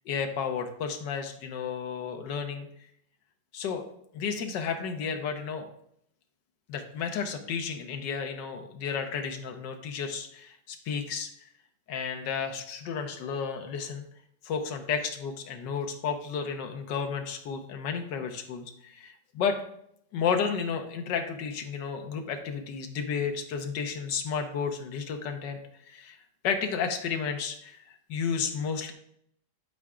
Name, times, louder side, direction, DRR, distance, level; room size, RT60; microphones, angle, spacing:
voice 1, 0.1-2.7 3.5-3.8 4.1-5.7 6.7-11.3 11.9-14.0 14.4-19.6 20.1-25.6 25.9-26.2 26.4-28.9, left 6 dB, 85° left, 5 dB, 1.5 m, -32 dB
10.5 x 4.7 x 3.6 m, 0.70 s
omnidirectional pair, 1.9 m